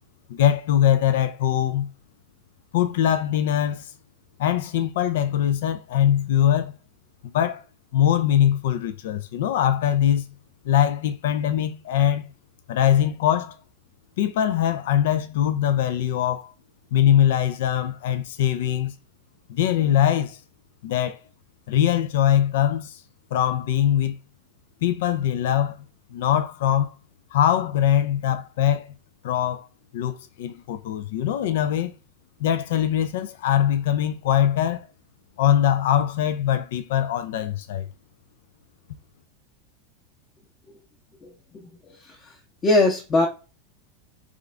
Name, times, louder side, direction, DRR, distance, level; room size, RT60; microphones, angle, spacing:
voice 1, 0.3-1.9 2.7-3.9 4.4-6.7 7.3-7.6 7.9-10.3 10.6-12.3 12.7-13.6 14.2-16.5 16.9-18.9 19.5-20.4 20.8-21.2 21.7-23.0 23.3-24.2 24.8-25.8 26.1-26.9 27.3-28.9 29.2-29.7 29.9-31.9 32.4-34.9 35.4-37.9, left 10 dB, 70° left, 0.4 m, -22 dB
voice 2, 41.2-42.4 42.6-43.3, left 2 dB, 30° left, 0.8 m, -23 dB
3.6 x 2.5 x 3.3 m
hypercardioid pair, 95°, 0 cm